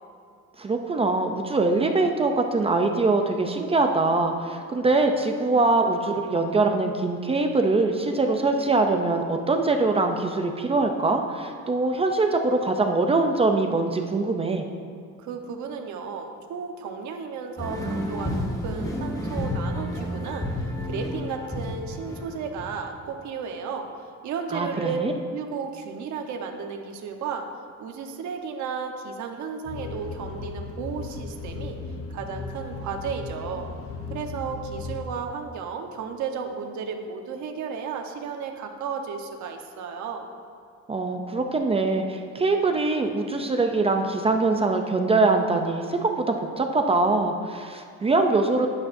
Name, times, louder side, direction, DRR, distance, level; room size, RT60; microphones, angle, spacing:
voice 1, 0.6-14.6 24.5-25.1 40.9-48.7, right 3 dB, 20° right, 4 dB, 0.5 m, -23 dB
voice 2, 15.2-23.9 24.2-25.0 25.3-27.5 27.8-31.8 32.1-33.7 34.1-40.3, right 6 dB, 70° right, 4 dB, 1.1 m, -34 dB
sound 1, 17.6-22.7, left 1 dB, 10° left, 1.1 m, -30 dB
sound 2, 29.6-35.0, left 3 dB, 50° left, 0.9 m, -36 dB
12.5 x 11.0 x 2.7 m, 2.4 s
cardioid pair, 165°, 30 cm